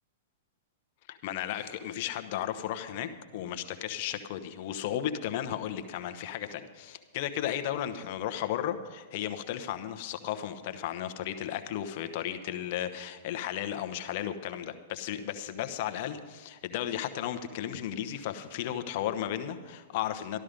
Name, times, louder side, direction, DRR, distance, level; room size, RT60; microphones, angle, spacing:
voice 1, 1.1-20.4, left 11 dB, 55° left, 8 dB, 1.0 m, -34 dB
13.0 x 12.5 x 5.2 m, 1.4 s
hypercardioid pair, 110°, 0 cm